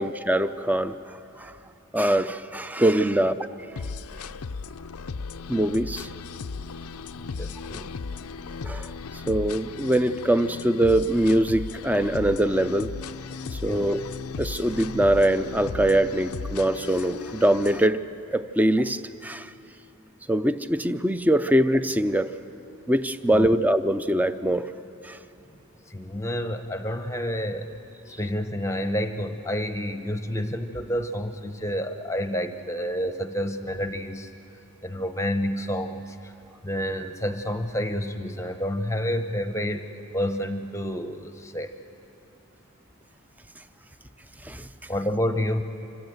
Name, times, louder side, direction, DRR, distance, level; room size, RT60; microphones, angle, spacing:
voice 1, 0.0-1.5 1.9-3.5 5.5-6.1 8.6-12.9 13.5-14.0 14.4-18.0 18.3-19.5 20.3-22.3 22.9-24.7 25.0-25.2 44.4-44.7, right 1 dB, 5° right, 12 dB, 0.5 m, -23 dB
sound 1, 3.8-17.9, left 4 dB, 85° left, 0.6 m, -36 dB
voice 2, 7.2-7.9 13.6-13.9 23.3-23.6 25.9-27.7 28.1-34.3 34.8-36.3 36.6-41.7 44.9-45.6, equal, 15° left, 8 dB, 0.8 m, -29 dB
26.5 x 24.5 x 8.0 m, 2.8 s
head